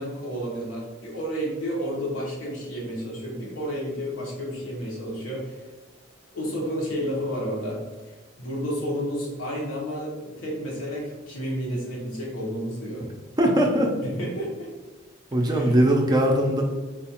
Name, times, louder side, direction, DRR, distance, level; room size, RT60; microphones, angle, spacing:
voice 1, 0.0-5.6 6.3-13.1 14.0-14.7 15.4-15.8, equal, 85° left, -3 dB, 1.1 m, -31 dB
voice 2, 13.4-13.9 15.3-16.6, right 1 dB, 20° right, 1 dB, 0.4 m, -20 dB
3.9 x 2.3 x 2.9 m, 1.3 s
head